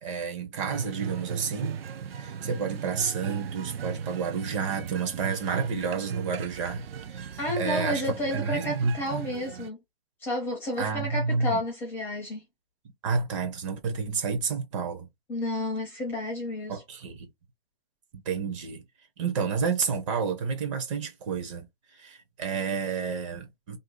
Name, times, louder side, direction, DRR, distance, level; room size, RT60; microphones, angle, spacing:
voice 1, 0.0-1.8 2.1-6.8 7.1-7.3 7.6-9.3 10.8-11.6 13.0-15.1 16.7-17.3 18.1-18.8 19.2-21.7 21.9-23.8, right 5 dB, 30° right, 0.7 m, -30 dB
sound 1, 0.5-9.7, right 7 dB, 75° right, 0.5 m, -36 dB
voice 2, 7.4-9.8 10.2-12.4 15.3-16.8, left 1 dB, 5° left, 0.5 m, -31 dB
2.7 x 2.3 x 3.7 m
hypercardioid pair, 145°, 30 cm